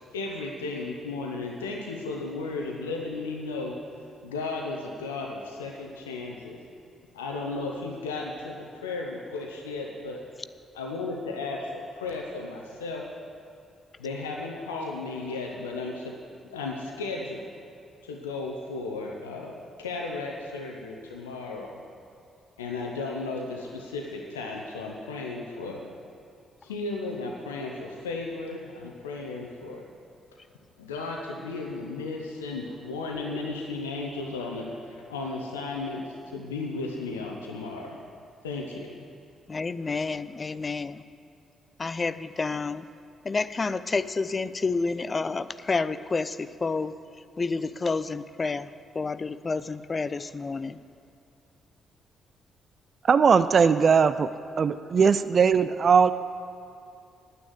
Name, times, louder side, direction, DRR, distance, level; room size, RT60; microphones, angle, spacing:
voice 1, 0.1-3.8 4.2-6.6 7.1-10.2 10.7-13.1 14.0-16.2 16.5-17.5 18.0-21.7 22.6-25.8 26.6-29.8 30.8-38.0 38.4-38.9, left 3 dB, 75° left, 0 dB, 0.8 m, -34 dB
voice 2, 39.5-41.0 41.8-42.9 43.2-46.9 47.4-48.7 48.9-50.8, left 4 dB, 30° left, 14 dB, 0.5 m, -29 dB
voice 3, 53.1-54.3 54.6-56.1, right 6 dB, 45° right, 13 dB, 0.4 m, -19 dB
9.5 x 9.3 x 7.9 m, 2.5 s
figure-of-eight pair, 40°, 0 cm